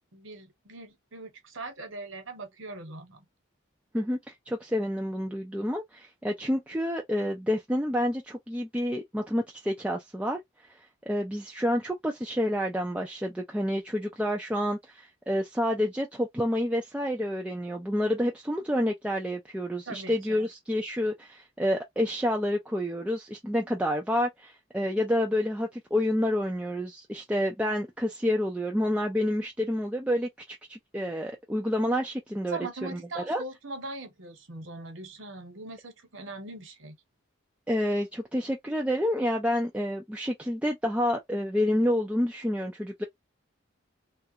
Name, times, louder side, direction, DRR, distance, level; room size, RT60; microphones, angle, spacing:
voice 1, 0.1-3.2 19.9-20.5 32.5-37.0, right 3 dB, 70° right, 1.2 m, -41 dB
voice 2, 3.9-10.4 10.7-10.8 11.1-33.4 37.7-43.0, equal, 5° right, 0.4 m, -29 dB
3.3 x 2.4 x 2.8 m
head